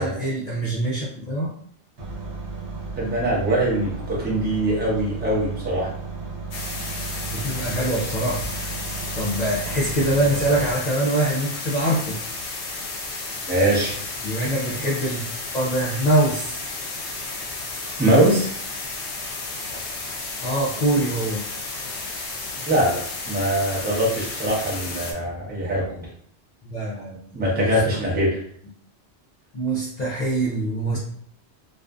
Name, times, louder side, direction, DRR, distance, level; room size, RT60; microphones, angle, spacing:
voice 1, 0.0-1.5 7.3-8.7 9.1-12.2 14.2-15.3 15.5-16.6 20.4-21.4 26.6-27.7 28.1-28.3 29.5-31.0, right 1 dB, 55° left, -5 dB, 0.5 m, -24 dB
sound 1, 2.0-10.7, right 4 dB, 80° right, 1.0 m, -34 dB
voice 2, 3.0-5.9 13.5-14.0 18.0-18.5 22.7-26.1 27.3-28.4, right 1 dB, 10° right, -6 dB, 0.6 m, -22 dB
sound 2, 6.5-25.1, left 3 dB, 75° left, 0.8 m, -33 dB
2.4 x 2.4 x 2.2 m, 0.62 s
omnidirectional pair, 1.1 m